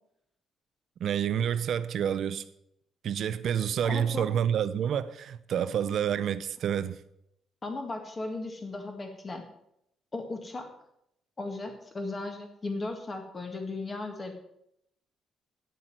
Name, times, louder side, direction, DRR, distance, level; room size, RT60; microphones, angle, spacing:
voice 1, 1.0-2.4 3.0-7.0, right 9 dB, 55° right, 0.6 m, -28 dB
voice 2, 3.8-4.3 7.6-9.4 10.1-10.7 11.4-14.3, left 2 dB, 20° left, 1.8 m, -36 dB
9.2 x 8.0 x 7.6 m
cardioid pair, 160°, 0 cm